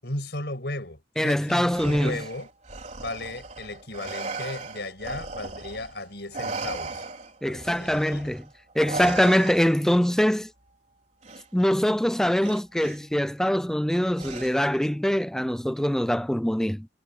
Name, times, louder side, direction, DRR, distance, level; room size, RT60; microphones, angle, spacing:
voice 1, 0.0-2.5 3.0-7.0 7.4-8.3, left 2 dB, 60° left, 7.9 m, -35 dB
voice 2, 1.2-2.2 7.4-8.4 8.8-10.5 11.5-16.9, equal, 5° left, 0.3 m, -23 dB
Respiratory sounds, 1.6-6.0 6.3-10.0 11.2-11.4 12.4-13.0 14.2-14.8, right 3 dB, 40° right, 4.5 m, -37 dB
head